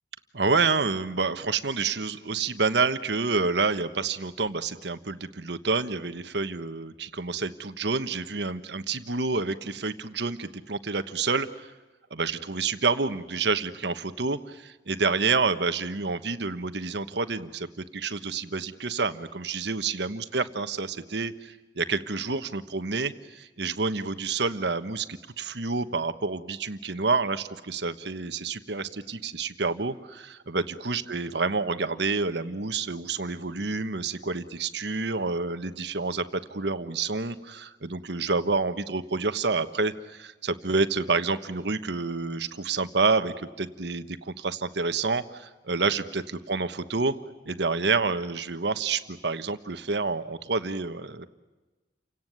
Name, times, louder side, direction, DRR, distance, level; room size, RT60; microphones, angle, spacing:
voice 1, 0.3-11.7 12.1-47.1 47.5-51.3, right 4 dB, 70° right, 10 dB, 1.3 m, -28 dB
29.5 x 17.5 x 9.4 m, 1.2 s
head